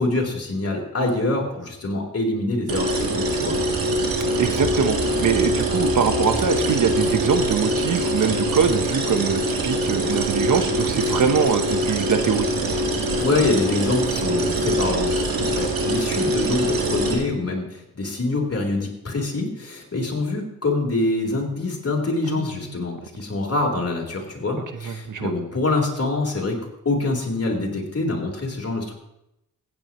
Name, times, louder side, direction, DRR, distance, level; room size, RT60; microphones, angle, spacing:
voice 1, 0.0-3.6 13.2-26.6 26.8-28.9, left 2 dB, 45° left, -1 dB, 3.8 m, -25 dB
sound 1, 2.7-17.1, right 1 dB, 85° right, 2.0 m, -23 dB
voice 2, 4.4-12.6 22.3-22.8 24.8-25.3, right 6 dB, 65° right, 10 dB, 1.0 m, -23 dB
sound 2, 4.6-8.1, equal, ahead, 2.2 m, -35 dB
16.0 x 9.7 x 3.0 m, 0.86 s
cardioid pair, 55°, 34 cm